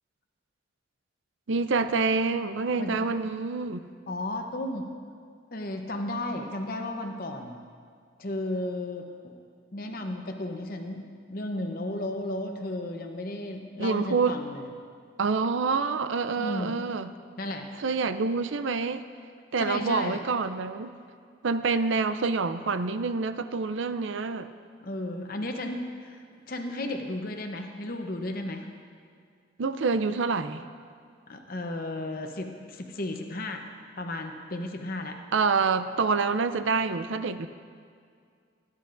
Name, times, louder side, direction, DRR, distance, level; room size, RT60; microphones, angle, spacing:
voice 1, 1.5-3.9 13.8-14.4 15.2-17.1 17.8-19.0 19.5-20.9 21.4-24.5 29.6-30.6 35.3-37.5, right 4 dB, 75° right, 11 dB, 0.5 m, -27 dB
voice 2, 2.8-3.3 4.1-4.9 5.5-7.6 8.2-9.4 9.7-11.0 11.3-14.7 16.4-16.8 17.4-17.7 19.6-20.2 24.8-28.7 31.3-33.7 34.0-35.2, left 1 dB, 50° left, 3 dB, 0.8 m, -34 dB
18.5 x 10.5 x 2.6 m, 2.2 s
head